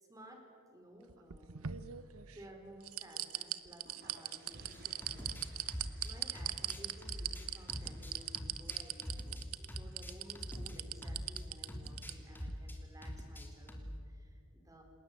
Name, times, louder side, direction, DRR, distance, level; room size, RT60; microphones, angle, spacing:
voice 1, 0.1-1.9 2.3-14.8, equal, 15° right, 3 dB, 4.5 m, -56 dB
sound 1, 1.1-2.4 2.9-12.1 12.5-12.6, right 12 dB, 90° right, 0.9 m, -39 dB
sound 2, 3.6-12.6, right 1 dB, 50° right, 4.1 m, -62 dB
sound 3, 4.7-11.4 11.7-12.8 13.0-14.0, equal, 10° left, 3.0 m, -44 dB
28.0 x 20.0 x 8.3 m, 2.2 s
head